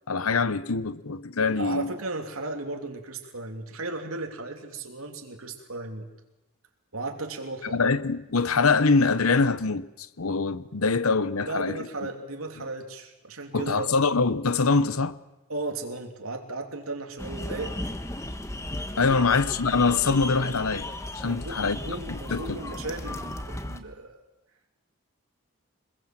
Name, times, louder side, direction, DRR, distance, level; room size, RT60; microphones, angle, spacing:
voice 1, 0.1-1.9 7.7-12.1 13.5-15.2 19.0-20.9 21.1-21.8 22.1-22.6, left 4 dB, 85° left, 1.0 m, -24 dB
voice 2, 1.5-6.1 6.9-7.8 11.4-13.9 15.5-17.7 19.1-19.2 21.2-24.2, right 2 dB, 80° right, 2.9 m, -35 dB
sound 1, 17.2-23.8, left 1 dB, 15° left, 1.3 m, -35 dB
25.5 x 21.0 x 7.6 m
head